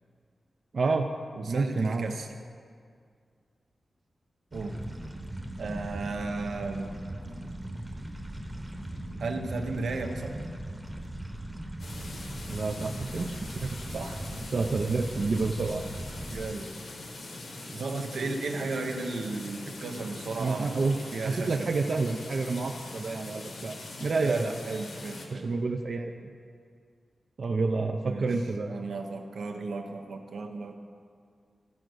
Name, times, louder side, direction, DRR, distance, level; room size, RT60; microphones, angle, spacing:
voice 1, 0.7-1.1 1.5-2.1 12.5-13.3 13.6-13.8 14.5-15.8 20.4-24.5 25.3-26.1 27.4-28.7, right 3 dB, 50° right, 4 dB, 0.4 m, -29 dB
voice 2, 1.4-2.3 4.5-4.8 5.6-7.0 9.2-10.5 13.9-14.2 16.3-16.7 17.7-20.7 21.1-21.7 24.2-25.5 28.1-28.3 28.7-30.8, right 3 dB, 85° right, 4 dB, 0.8 m, -34 dB
Liquid Mud Organic viscous Squishy gloopy low frecuency, 4.5-16.5, right 1 dB, 10° right, 0.9 m, -39 dB
sound 1, 11.8-25.3, left 2 dB, 70° left, 1.4 m, -42 dB
14.0 x 5.0 x 6.3 m, 2.2 s
wide cardioid pair, 165°, 0 cm